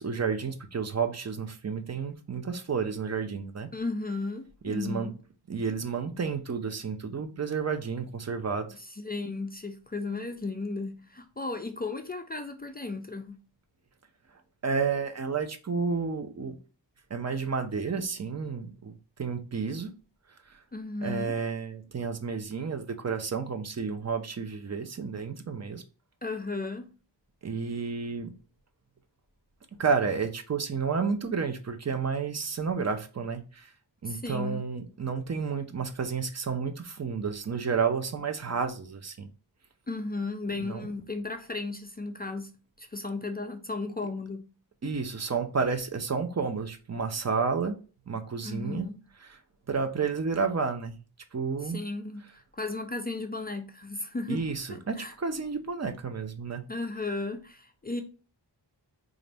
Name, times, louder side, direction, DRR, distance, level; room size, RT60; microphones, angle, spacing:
voice 1, 0.0-3.7 4.6-5.1 5.5-8.7 14.6-16.6 17.1-18.9 19.2-19.9 20.5-20.6 21.0-25.8 27.4-28.3 29.8-33.7 34.0-39.3 40.6-40.9 44.8-47.8 48.1-48.9 49.7-51.0 51.3-51.8 54.3-56.6, right 5 dB, 35° right, 0.6 m, -31 dB
voice 2, 3.7-5.1 8.8-13.4 20.7-21.3 26.2-26.9 34.0-34.6 39.9-42.5 42.8-44.4 48.4-49.0 51.6-52.2 52.5-54.4 54.7-55.1 56.7-58.0, left 3 dB, 25° left, 0.3 m, -35 dB
4.0 x 2.5 x 3.3 m
wide cardioid pair, 85°, 44 cm